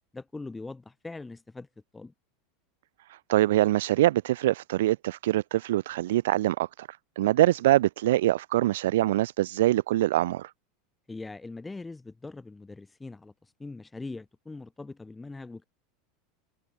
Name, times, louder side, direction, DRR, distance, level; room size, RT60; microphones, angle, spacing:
voice 1, 0.1-1.7 1.9-2.1 11.1-15.7, left 3 dB, 10° left, 4.3 m, -41 dB
voice 2, 3.1-6.9 7.2-10.5, right 15 dB, 85° right, 0.4 m, -24 dB
supercardioid pair, 160°, 0 cm